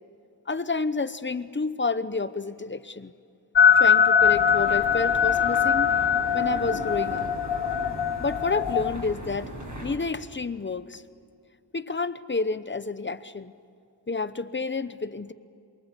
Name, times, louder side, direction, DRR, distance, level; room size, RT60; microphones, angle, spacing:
voice 1, 0.5-3.1 3.8-5.9 6.3-7.3 8.2-9.5 9.8-11.0 11.7-13.5 14.1-15.3, left 4 dB, 25° left, 13 dB, 0.9 m, -29 dB
sound 1, 3.5-8.9, left 7 dB, 70° left, 1.1 m, -22 dB
sound 2, 4.2-10.0, equal, 40° right, 6.3 m, -38 dB
27.5 x 24.0 x 8.3 m, 2.5 s
wide cardioid pair, 120°, 44 cm